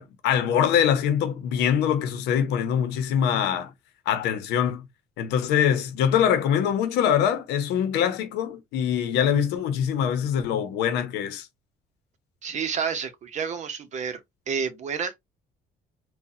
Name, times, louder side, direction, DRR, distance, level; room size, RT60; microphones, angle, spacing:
voice 1, 0.0-3.7 4.1-4.9 5.2-11.5, left 9 dB, 90° left, 0.8 m, -23 dB
voice 2, 12.4-14.2 14.5-15.1, right 6 dB, 45° right, 0.8 m, -29 dB
3.9 x 2.2 x 2.7 m
cardioid pair, 110°, 17 cm